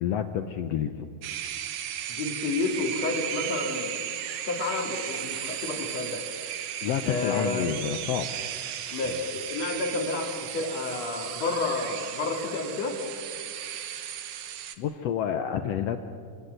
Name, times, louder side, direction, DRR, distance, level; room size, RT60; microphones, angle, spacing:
voice 1, 0.0-1.1 6.8-8.3 14.8-16.0, left 9 dB, 75° left, 8 dB, 1.5 m, -29 dB
sound 1, 1.2-14.8, right 10 dB, 70° right, 2.2 m, -35 dB
voice 2, 2.1-3.9 4.4-6.3 7.0-7.7 8.9-13.0, left 3 dB, 55° left, 3 dB, 3.2 m, -30 dB
27.5 x 18.0 x 8.0 m, 2.4 s
omnidirectional pair, 3.7 m